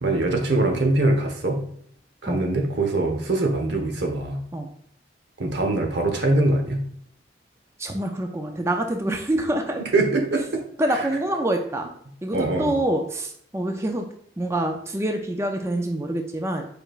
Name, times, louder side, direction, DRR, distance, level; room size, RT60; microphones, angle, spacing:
voice 1, 0.0-1.6 2.2-4.4 5.4-6.9 9.8-10.6 10.9-11.1 12.3-12.7, right 2 dB, 85° right, 3 dB, 0.9 m, -23 dB
voice 2, 7.8-9.8 10.8-11.9 12.2-14.1 14.4-16.7, right 1 dB, 15° right, 3 dB, 0.4 m, -26 dB
5.0 x 4.5 x 2.4 m, 0.65 s
head